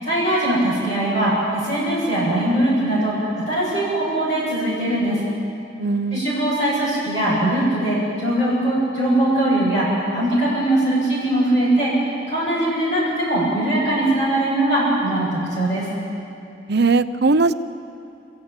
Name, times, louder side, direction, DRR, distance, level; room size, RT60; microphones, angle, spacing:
voice 1, 0.0-5.2 6.1-11.9 12.3-15.9, right 1 dB, 35° left, -9 dB, 7.8 m, -21 dB
voice 2, 5.8-6.2 16.7-17.5, right 3 dB, 60° right, 12 dB, 0.7 m, -18 dB
27.5 x 16.0 x 9.0 m, 2.6 s
head